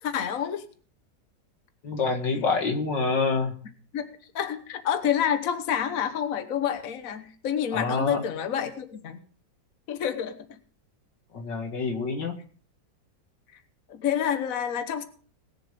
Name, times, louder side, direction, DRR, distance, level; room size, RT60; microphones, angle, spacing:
voice 1, 0.0-0.7 3.9-4.1 4.3-9.2 9.9-10.6 13.9-15.0, left 9 dB, 55° left, 9 dB, 1.5 m, -28 dB
voice 2, 1.8-3.5 7.7-8.2 11.3-12.4, left 4 dB, 90° left, 4 dB, 2.7 m, -26 dB
20.5 x 6.9 x 5.2 m, 0.44 s
omnidirectional pair, 1.9 m